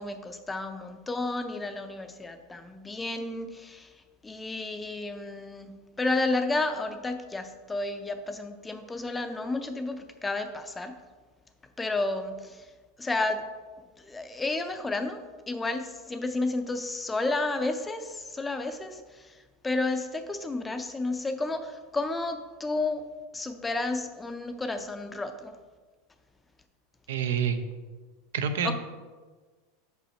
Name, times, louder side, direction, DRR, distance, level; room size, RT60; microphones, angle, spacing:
voice 1, 0.0-3.9 4.2-10.9 11.8-12.7 13.0-13.5 14.0-15.2 15.5-23.0 23.3-25.5 28.6-28.7, left 2 dB, 10° left, 8 dB, 0.5 m, -31 dB
voice 2, 27.1-27.6 28.3-28.7, right 7 dB, 90° right, 9 dB, 0.6 m, -27 dB
5.5 x 5.5 x 4.2 m, 1.4 s
supercardioid pair, 145°, 0 cm